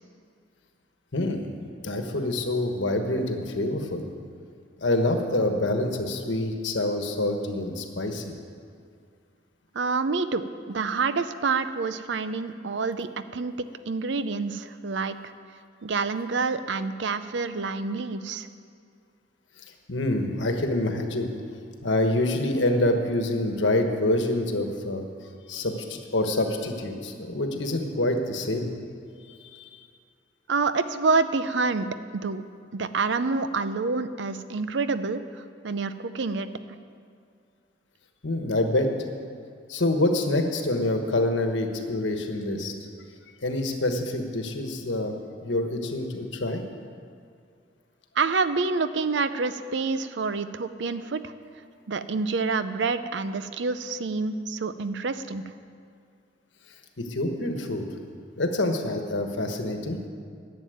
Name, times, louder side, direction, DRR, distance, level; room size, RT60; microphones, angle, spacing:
voice 1, 1.1-1.5 1.8-4.1 4.8-8.4 19.9-21.3 21.8-25.1 25.5-28.7 29.4-29.8 38.2-38.9 39.7-42.7 43.4-45.1 45.4-46.6 57.0-57.9 58.4-60.0, left 1 dB, 80° left, 4 dB, 1.3 m, -26 dB
voice 2, 9.7-13.5 13.9-15.3 15.8-18.5 30.5-31.9 32.1-32.4 32.7-35.2 35.6-36.5 48.2-51.3 51.9-55.4, right 4 dB, 70° right, 12 dB, 0.6 m, -27 dB
11.5 x 7.4 x 9.4 m, 2.3 s
head